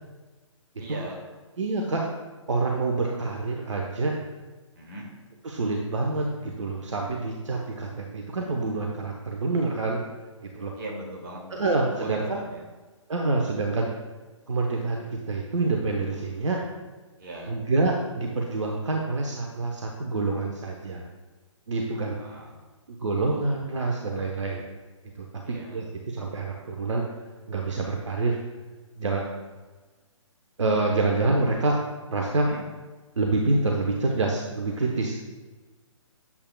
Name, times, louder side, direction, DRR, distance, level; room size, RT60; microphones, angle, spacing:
voice 1, 0.8-1.2 4.8-5.1 10.7-11.6 12.0-12.6 17.2-17.5 21.9-22.5 25.4-25.8 32.3-32.6, right 1 dB, 35° right, -2 dB, 2.1 m, -39 dB
voice 2, 1.6-2.0 2.5-4.1 5.4-10.0 10.4-10.7 11.5-12.4 13.1-13.9 14.5-16.6 17.5-21.0 21.7-22.1 22.9-24.6 25.2-27.0 27.5-28.4 29.0-29.2 30.6-31.8 32.1-32.5 33.2-35.2, right 3 dB, 65° right, 0 dB, 1.0 m, -27 dB
8.5 x 8.2 x 2.3 m, 1.3 s
figure-of-eight pair, 135°, 17 cm